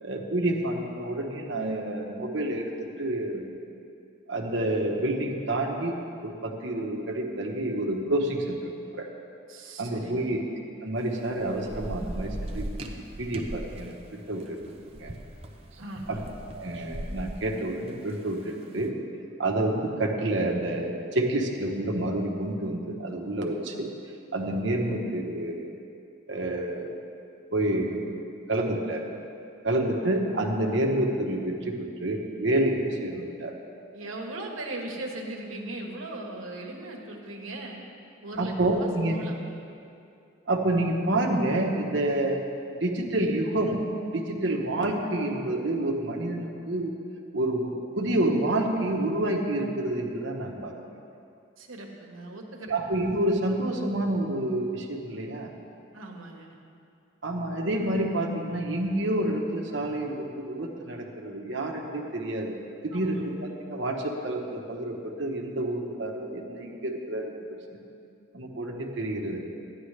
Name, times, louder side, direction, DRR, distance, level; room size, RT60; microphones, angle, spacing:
voice 1, 0.0-3.5 4.3-6.0 6.2-8.6 8.9-9.1 9.8-10.4 10.8-12.7 13.2-14.6 14.9-15.1 16.1-16.2 16.5-18.9 19.4-23.9 24.3-25.7 26.3-26.9 27.5-28.1 28.5-29.0 29.6-33.6 38.4-39.2 40.5-42.4 42.8-43.8 44.1-46.9 47.3-50.8 52.7-55.5 57.2-62.6 62.8-67.3 68.3-69.4, right 1 dB, 65° right, 1 dB, 1.1 m, -28 dB
voice 2, 9.5-10.3 15.8-16.2 32.4-32.5 33.9-37.8 38.2-39.4 51.6-52.7 55.9-56.6 62.9-63.3, right 2 dB, 85° right, 0 dB, 1.3 m, -38 dB
Thunder / Rain, 11.0-18.6, right 1 dB, 30° right, 0.6 m, -39 dB
13.0 x 10.0 x 3.3 m, 2.5 s
head